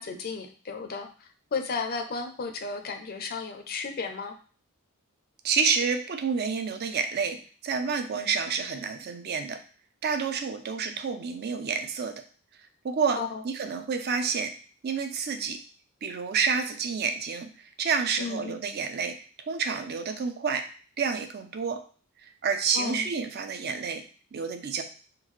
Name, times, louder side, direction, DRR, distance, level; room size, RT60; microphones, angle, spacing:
voice 1, 0.0-4.3 8.1-8.3 13.2-13.4 18.2-18.6 22.7-23.1, left 4 dB, 45° left, 5 dB, 0.4 m, -34 dB
voice 2, 5.4-9.6 10.0-12.2 12.8-13.2 13.4-14.5 14.8-15.6 16.0-17.5 17.8-20.6 21.0-21.8 22.4-24.0 24.3-24.8, right 5 dB, 45° right, 7 dB, 0.4 m, -29 dB
3.7 x 2.3 x 3.1 m, 0.40 s
head